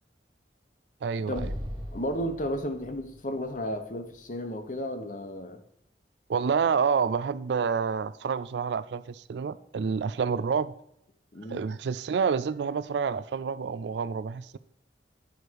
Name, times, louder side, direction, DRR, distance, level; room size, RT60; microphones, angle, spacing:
voice 1, 1.0-1.5 6.3-10.7 11.5-14.6, right 6 dB, 75° right, 16 dB, 0.4 m, -28 dB
Explosion, 1.3-4.6, equal, 25° right, 1.4 m, -40 dB
voice 2, 1.9-5.6 11.3-11.7, equal, 45° left, 7 dB, 1.0 m, -33 dB
9.5 x 5.0 x 4.6 m, 0.78 s
head